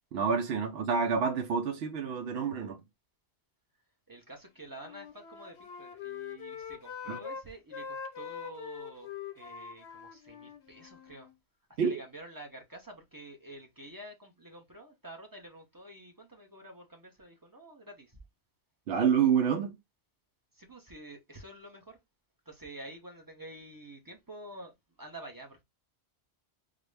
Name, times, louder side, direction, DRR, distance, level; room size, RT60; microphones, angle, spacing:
voice 1, 0.1-2.8 7.1-7.2 11.8-12.0 18.9-19.8, right 6 dB, 75° right, 0.8 m, -28 dB
voice 2, 4.1-11.3 11.8-18.2 20.5-22.0 22.5-25.6, right 1 dB, 20° right, 0.7 m, -49 dB
Wind instrument woodwind instrument, 4.7-7.4 7.7-11.3, left 7 dB, 85° left, 1.0 m, -43 dB
3.8 x 2.1 x 3.2 m
omnidirectional pair, 1.1 m